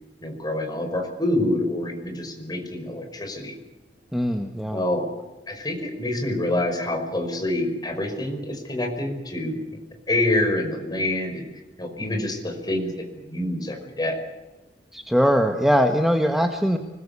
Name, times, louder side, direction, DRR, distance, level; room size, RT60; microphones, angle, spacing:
voice 1, 0.2-3.5 4.7-5.0 5.5-9.8 10.1-11.4 11.8-14.2, left 1 dB, 25° left, 4 dB, 5.4 m, -26 dB
voice 2, 4.1-4.8 12.0-12.3 14.9-16.8, equal, ahead, 4 dB, 1.5 m, -21 dB
25.5 x 20.5 x 8.4 m, 1.1 s
head